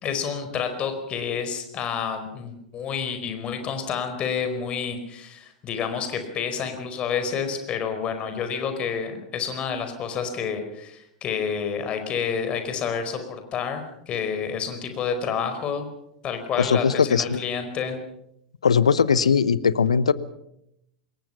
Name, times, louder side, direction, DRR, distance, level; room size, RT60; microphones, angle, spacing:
voice 1, 0.0-15.9 16.2-18.0, left 6 dB, 30° left, 7 dB, 4.7 m, -29 dB
voice 2, 16.6-17.4 18.6-20.1, left 6 dB, 75° left, 17 dB, 1.0 m, -20 dB
26.5 x 21.5 x 5.8 m, 0.78 s
figure-of-eight pair, 90°, 3 cm